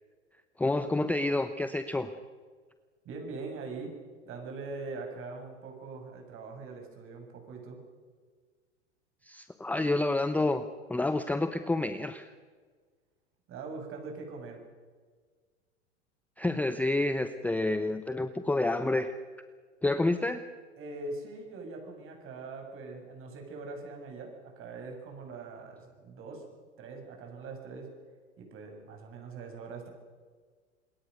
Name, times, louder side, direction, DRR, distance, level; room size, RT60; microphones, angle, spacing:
voice 1, 0.6-2.1 9.2-12.3 16.4-19.1 19.8-20.4, left 2 dB, 5° left, 10 dB, 0.8 m, -29 dB
voice 2, 3.0-3.9 4.3-7.8 13.5-14.6 20.8-26.4 26.8-27.9 28.4-29.9, right 3 dB, 35° right, 3 dB, 7.5 m, -42 dB
27.0 x 22.0 x 6.7 m, 1.5 s
hypercardioid pair, 105°, 36 cm